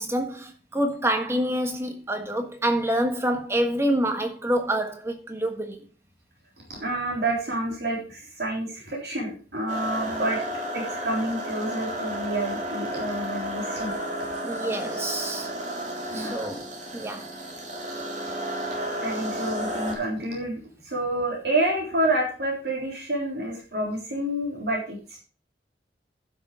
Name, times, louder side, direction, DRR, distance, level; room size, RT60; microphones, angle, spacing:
voice 1, 0.0-5.8 14.4-15.5 16.1-17.2, right 1 dB, 15° right, 1.4 m, -27 dB
voice 2, 6.7-10.4 10.7-14.0 16.1-16.4 19.0-25.0, right 1 dB, 60° right, 3.6 m, -28 dB
sound 1, 9.7-19.9, right 1 dB, 40° right, 2.5 m, -32 dB
11.5 x 6.3 x 5.0 m
head